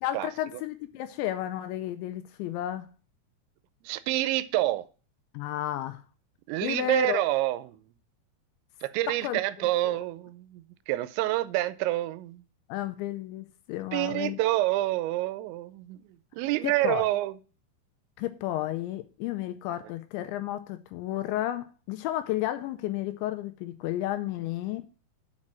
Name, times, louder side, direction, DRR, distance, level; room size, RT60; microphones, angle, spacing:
voice 1, 0.0-2.9 5.3-6.0 6.6-7.2 9.1-9.4 9.8-10.0 12.7-14.4 16.6-17.0 18.2-24.9, left 13 dB, 85° left, 2.9 m, -32 dB
voice 2, 3.8-4.9 6.5-7.8 8.8-12.4 13.9-17.4, right 16 dB, 85° right, 2.8 m, -28 dB
7.5 x 5.4 x 7.3 m
omnidirectional pair, 5.5 m